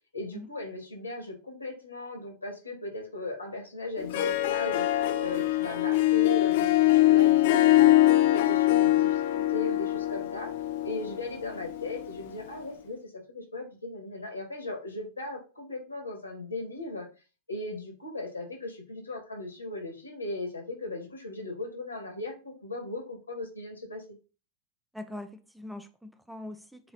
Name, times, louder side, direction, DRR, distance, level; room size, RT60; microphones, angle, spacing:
voice 1, 0.1-10.5 10.8-17.1 17.5-24.0, left 2 dB, 80° left, 2.0 m, -38 dB
Harp, 4.0-12.6, left 15 dB, 50° left, 0.6 m, -23 dB
voice 2, 24.9-26.9, left 1 dB, 5° right, 0.6 m, -42 dB
7.8 x 3.0 x 4.1 m
figure-of-eight pair, 90°, 0 cm